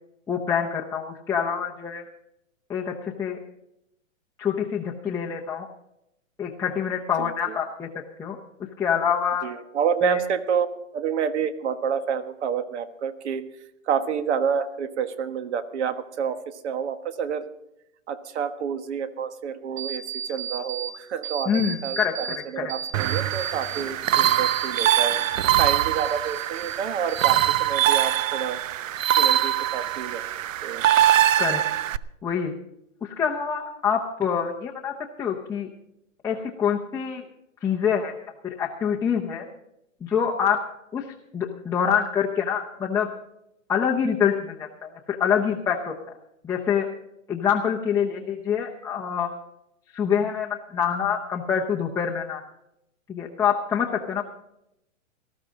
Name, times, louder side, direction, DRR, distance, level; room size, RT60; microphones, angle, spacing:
voice 1, 0.3-2.0 2.7-3.4 4.4-5.7 6.4-7.9 8.2-8.4 8.8-9.5 10.0-10.2 21.5-22.7 31.4-31.6 32.2-32.5 33.0-35.7 36.2-37.2 37.6-38.2 38.4-39.4 40.0-40.6 40.9-41.1 41.3-43.1 43.7-45.9 46.4-46.9 47.3-49.3 49.9-52.4 53.1-54.2, left 7 dB, 10° left, -2 dB, 0.8 m, -26 dB
voice 2, 7.2-7.6 9.4-10.7 10.9-13.5 13.9-17.4 18.1-25.2 25.6-28.6 29.1-30.2 30.6-30.8, right 7 dB, 60° right, 10 dB, 1.5 m, -29 dB
sound 1, 19.8-20.9 21.2-22.4 22.7-25.3 25.6-26.8 27.1-27.7, right 8 dB, 35° right, 3.3 m, -35 dB
sound 2, 22.9-32.0, right 12 dB, 75° right, 0.7 m, -23 dB
19.0 x 13.5 x 3.8 m, 0.81 s
hypercardioid pair, 145°, 39 cm